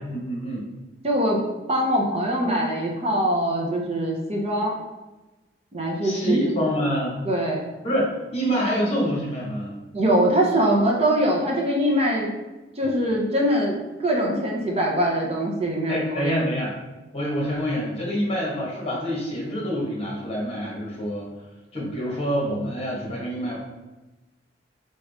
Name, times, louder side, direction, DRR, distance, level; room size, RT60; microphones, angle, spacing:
voice 1, 0.1-0.7 6.0-7.2 7.8-9.8 15.9-16.7 17.1-21.3 21.7-23.6, equal, 35° left, -3 dB, 1.4 m, -26 dB
voice 2, 1.0-4.7 5.7-6.4 7.2-7.7 9.9-12.3 12.8-16.4, right 1 dB, 35° right, -1 dB, 0.7 m, -23 dB
4.1 x 3.6 x 3.5 m, 1.1 s
head